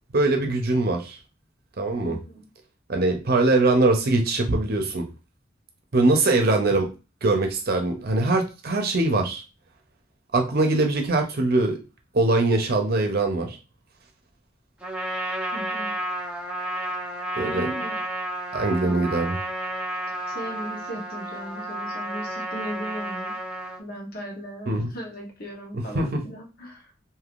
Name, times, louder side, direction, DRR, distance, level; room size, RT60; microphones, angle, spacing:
voice 1, 0.1-1.2 1.8-2.2 2.9-5.0 5.9-6.9 7.2-9.4 10.3-11.8 12.1-13.6 17.4-17.7 18.5-19.4 24.7-24.9 25.7-26.2, right 2 dB, 55° right, 3 dB, 0.7 m, -22 dB
voice 2, 2.0-2.5 15.5-15.9 17.4-18.0 20.3-23.4 23.8-26.9, equal, 55° left, 1 dB, 1.0 m, -37 dB
Trumpet, 14.8-23.8, right 1 dB, 5° right, 0.7 m, -31 dB
3.4 x 2.6 x 2.5 m, 0.30 s
head